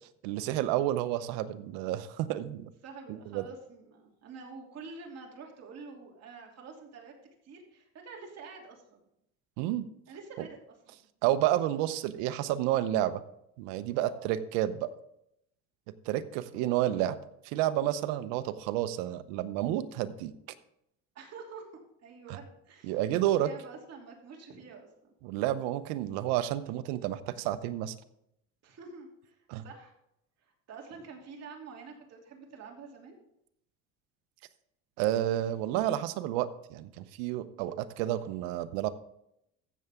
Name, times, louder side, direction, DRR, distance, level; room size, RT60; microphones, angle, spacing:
voice 1, 0.2-2.7 3.1-3.4 9.6-9.9 11.2-13.2 13.6-14.9 16.1-17.2 17.4-20.3 22.3-22.4 22.8-23.5 25.2-27.9 29.5-29.6 35.0-38.9, right 13 dB, 85° right, 13 dB, 0.8 m, -30 dB
voice 2, 2.8-7.1 7.4-9.0 10.1-10.6 14.0-14.3 21.1-23.0 23.3-25.1 28.6-29.9 30.4-33.2, right 4 dB, 50° right, 0 dB, 2.9 m, -47 dB
15.0 x 6.9 x 3.6 m, 0.78 s
cardioid pair, 110°, 34 cm